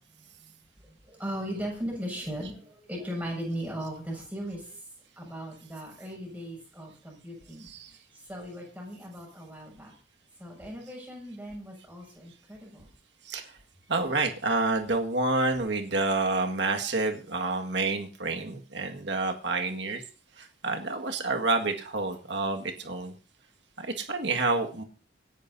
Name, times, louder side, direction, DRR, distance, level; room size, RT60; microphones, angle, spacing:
voice 1, 0.1-0.5 0.8-4.9 5.2-9.9 10.4-12.9, equal, 10° right, -4 dB, 6.4 m, -38 dB
voice 2, 13.9-20.0 20.4-23.1 23.8-24.8, right 3 dB, 65° right, 4 dB, 1.8 m, -28 dB
26.0 x 10.0 x 2.7 m, 0.38 s
head